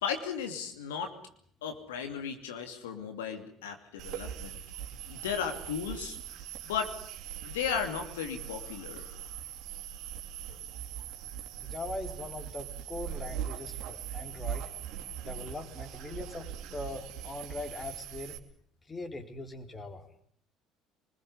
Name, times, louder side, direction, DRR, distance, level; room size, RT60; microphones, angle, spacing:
voice 1, 0.0-1.2 1.6-4.6 5.1-6.2 6.6-6.9 7.4-9.2, left 7 dB, 80° left, 6 dB, 2.7 m, -35 dB
sound 1, 4.0-18.4, right 9 dB, 60° right, 3.0 m, -41 dB
voice 2, 11.6-14.7 15.2-18.4 18.9-20.1, left 2 dB, 25° left, 7 dB, 4.0 m, -41 dB
25.0 x 20.5 x 9.7 m, 0.64 s
hypercardioid pair, 60°, 0 cm